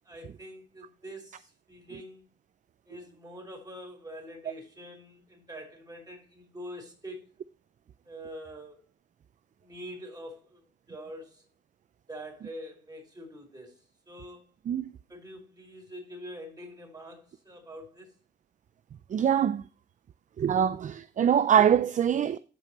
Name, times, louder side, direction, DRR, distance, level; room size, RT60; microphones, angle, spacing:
voice 1, 0.0-2.3 2.8-7.3 8.0-8.8 9.6-11.5 12.1-14.5 15.1-18.2, equal, 20° right, 5.1 m, -45 dB
voice 2, 19.1-19.6 20.4-22.4, right 9 dB, 40° right, 0.4 m, -23 dB
15.0 x 5.2 x 3.0 m
cardioid pair, 90°, 20 cm